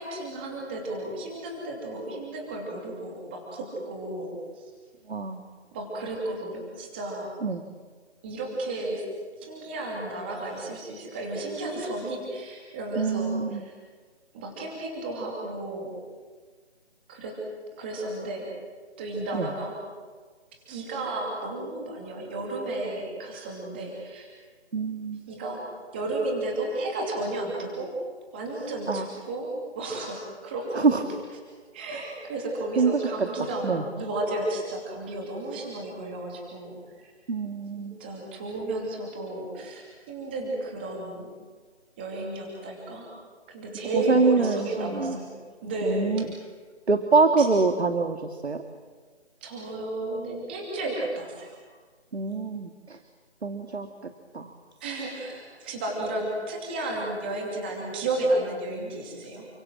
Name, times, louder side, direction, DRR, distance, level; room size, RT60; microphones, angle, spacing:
voice 1, 0.0-4.6 5.7-7.4 8.2-9.0 9.4-13.7 14.3-16.0 17.1-17.3 17.7-18.5 19.0-19.7 20.7-24.3 25.3-25.6 25.9-27.9 28.3-31.0 31.7-37.1 37.8-41.3 42.0-43.1 43.5-45.3 45.6-46.3 47.4-47.5 49.4-51.6 54.8-59.5, right 2 dB, 10° right, -1 dB, 2.7 m, -32 dB
voice 2, 5.1-5.4 7.4-7.6 13.0-13.6 19.3-19.5 24.7-25.3 28.9-29.1 30.8-31.0 31.9-32.0 32.8-33.1 33.6-33.8 37.3-38.0 43.9-45.2 45.8-46.2 46.9-48.2 48.4-48.6 52.1-53.0 53.4-53.9 54.3-54.5, right 4 dB, 70° right, 7 dB, 2.4 m, -25 dB
30.0 x 25.5 x 7.6 m, 1.5 s
figure-of-eight pair, 175°, 34 cm